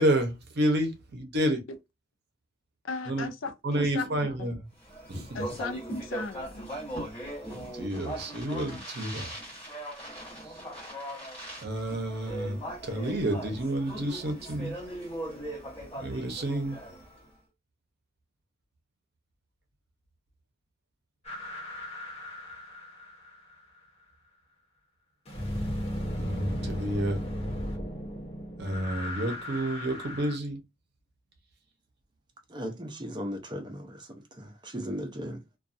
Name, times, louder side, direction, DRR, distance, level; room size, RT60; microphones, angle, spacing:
voice 1, 0.0-1.6 3.1-3.3 3.6-4.5 5.3-5.4 7.5-9.3 11.6-12.6 12.8-14.7 16.0-16.8 26.2-27.2 28.6-30.6, right 1 dB, 55° right, 0.8 m, -29 dB
voice 2, 2.8-4.5 5.3-6.7, left 3 dB, 70° left, 0.5 m, -37 dB
Speech, 4.8-17.2, right 1 dB, 10° left, 1.5 m, -39 dB
sound 1, 21.2-23.5 25.3-30.4, equal, 30° left, 0.8 m, -36 dB
voice 3, 32.5-34.1 34.4-35.4, equal, 20° right, 0.6 m, -37 dB
2.5 x 2.3 x 2.5 m
head